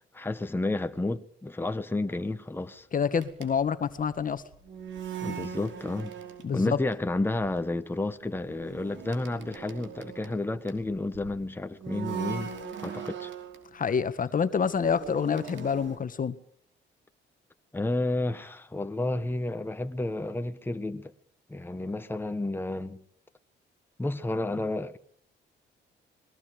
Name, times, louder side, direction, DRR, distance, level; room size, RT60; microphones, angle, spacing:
voice 1, 0.1-2.9 5.2-6.1 6.5-12.5 12.8-13.3 17.7-21.1 21.5-23.0 24.0-25.0, left 2 dB, 10° left, 1.5 m, -31 dB
voice 2, 2.9-4.4 6.4-6.8 13.7-16.4, left 6 dB, 45° left, 1.6 m, -27 dB
sound 1, 3.2-6.8 7.1-7.5 8.2-11.3 11.8-13.7 14.3-16.0, right 8 dB, 70° right, 5.3 m, -40 dB
26.5 x 22.0 x 5.1 m
cardioid pair, 90°, 20 cm